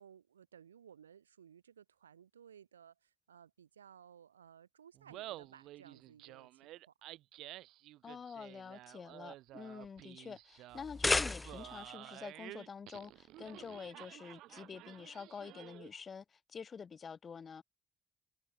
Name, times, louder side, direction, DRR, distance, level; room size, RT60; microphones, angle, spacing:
voice 1, 0.0-6.9, right 8 dB, 85° right, 3.2 m, -59 dB
Laughter, 4.9-16.0, right 16 dB, 65° right, 0.9 m, -51 dB
voice 2, 8.0-17.6, left 6 dB, 45° left, 2.5 m, -48 dB
sound 1, 10.7-11.9, left 2 dB, 20° left, 0.5 m, -33 dB
figure-of-eight pair, 40°, 0 cm